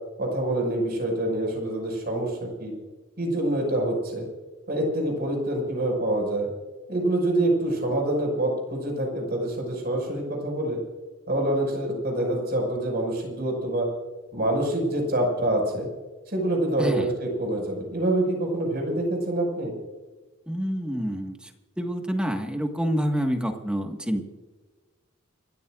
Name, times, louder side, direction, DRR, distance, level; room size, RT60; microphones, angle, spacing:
voice 1, 0.2-2.7 3.2-4.3 4.7-6.5 6.9-10.8 11.3-13.9 14.3-15.9 16.3-19.8, right 1 dB, 45° right, 1 dB, 5.9 m, -26 dB
voice 2, 16.8-17.1 20.5-21.5 21.8-24.2, equal, 5° right, 3 dB, 1.6 m, -27 dB
29.5 x 14.0 x 2.5 m, 1.3 s
head